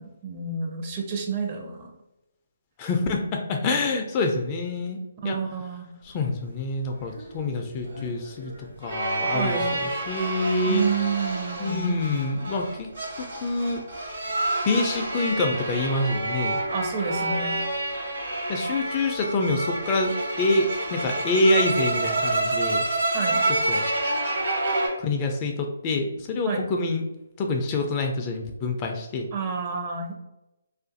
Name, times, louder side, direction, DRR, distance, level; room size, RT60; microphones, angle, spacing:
voice 1, 0.0-1.9 5.2-5.9 9.3-9.8 10.6-12.0 16.7-17.6 23.1-23.5 26.4-26.7 29.3-30.1, right 5 dB, 30° right, 2 dB, 0.5 m, -29 dB
voice 2, 2.8-5.0 5.2-5.4 6.0-8.5 8.8-10.8 11.6-12.9 13.2-13.8 14.6-16.6 18.5-22.8 23.5-23.8 25.0-27.0 27.4-29.3, left 2 dB, 25° left, 3 dB, 0.3 m, -26 dB
sound 1, 7.1-24.9, right 2 dB, 70° right, 1.2 m, -28 dB
2.5 x 2.4 x 2.5 m, 0.92 s
hypercardioid pair, 150°, 0 cm